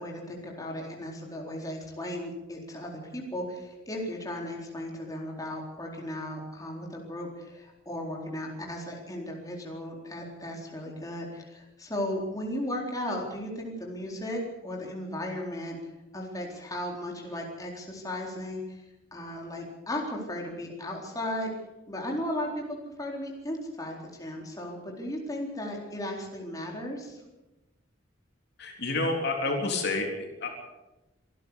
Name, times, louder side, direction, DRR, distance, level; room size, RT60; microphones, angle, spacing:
voice 1, 0.0-18.8 19.1-21.5 21.9-27.2, left 1 dB, 20° left, -1 dB, 4.2 m, -36 dB
voice 2, 28.6-30.5, left 2 dB, 55° left, 2 dB, 3.6 m, -29 dB
26.0 x 12.0 x 8.3 m, 1.0 s
head